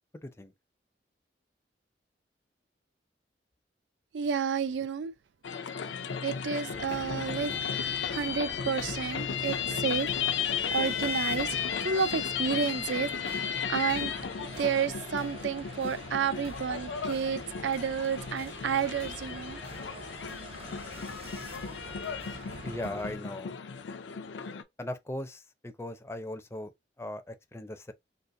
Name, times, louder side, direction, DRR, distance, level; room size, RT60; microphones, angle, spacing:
voice 1, 0.2-0.5 22.6-23.5 24.8-26.7 27.0-27.9, left 1 dB, 15° left, 0.4 m, -38 dB
voice 2, 4.1-5.1 6.2-10.1 10.7-14.1 14.6-19.6, right 6 dB, 80° right, 0.4 m, -31 dB
jamaa el fna medina marrakesh, 5.4-24.6, left 7 dB, 85° left, 0.5 m, -35 dB
sound 1, 6.7-23.2, right 3 dB, 35° right, 0.6 m, -47 dB
4.0 x 2.4 x 2.6 m
head